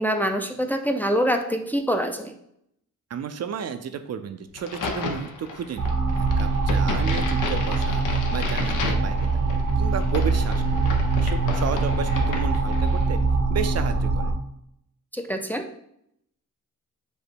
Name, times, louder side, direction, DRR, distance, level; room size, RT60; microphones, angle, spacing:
voice 1, 0.0-2.3 15.1-15.7, equal, 5° left, 4 dB, 0.4 m, -25 dB
voice 2, 3.1-10.8 11.2-13.2 13.5-14.3, right 7 dB, 55° right, 8 dB, 0.4 m, -33 dB
Crack, 4.6-13.1, left 4 dB, 75° left, 0.7 m, -33 dB
sound 1, 5.8-14.3, right 3 dB, 90° right, 0.9 m, -23 dB
5.1 x 2.0 x 4.4 m, 0.74 s
cardioid pair, 65°, 32 cm